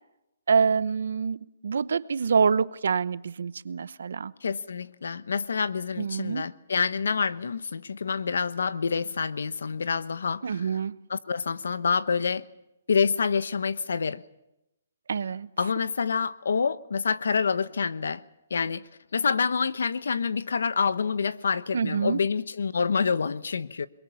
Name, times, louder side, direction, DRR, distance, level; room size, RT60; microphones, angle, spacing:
voice 1, 0.5-4.3 6.0-6.5 10.4-11.0 15.1-15.5 21.7-22.2, right 6 dB, 75° right, 1.0 m, -26 dB
voice 2, 4.4-10.8 11.1-12.4 12.9-14.2 15.6-18.2 18.5-23.9, left 5 dB, 80° left, 1.1 m, -27 dB
28.0 x 22.0 x 7.1 m
hypercardioid pair, 155°, 0 cm